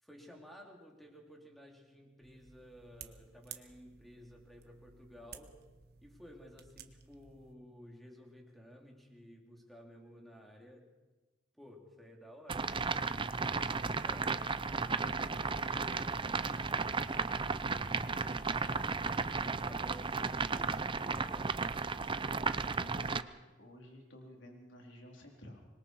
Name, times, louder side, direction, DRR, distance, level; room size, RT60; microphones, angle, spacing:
voice 1, 0.0-5.6 6.0-10.9 11.5-14.4 15.4-16.3 19.3-21.6, equal, ahead, 1 dB, 3.2 m, -55 dB
sound 1, 2.2-7.5, right 8 dB, 55° right, 1.3 m, -55 dB
sound 2, 12.5-23.2, right 4 dB, 25° right, 0.6 m, -34 dB
voice 2, 22.6-23.3 23.6-25.7, left 1 dB, 75° left, 1 dB, 4.0 m, -52 dB
25.5 x 22.0 x 4.8 m, 1.2 s
head